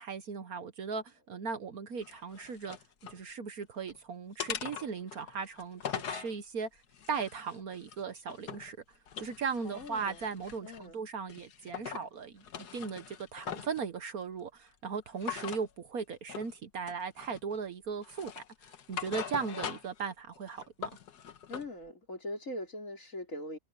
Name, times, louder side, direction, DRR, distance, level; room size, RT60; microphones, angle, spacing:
voice 1, 0.0-2.8 3.1-6.7 7.1-8.8 9.2-12.4 12.7-18.4 18.9-20.9, right 5 dB, 60° right, 1.5 m, -37 dB
sound 1, 2.0-3.2 3.6-4.0 4.4-6.3 6.9-8.7 9.1-10.9 11.3-12.1 12.4-13.8 15.2-15.7 16.3-16.5 16.9-17.6 18.0-20.0 20.4-21.7, left 8 dB, 70° left, 1.7 m, -42 dB
voice 2, 9.6-10.3 10.6-11.0 21.5-23.6, left 1 dB, 50° left, 4.8 m, -41 dB
omnidirectional pair, 1.8 m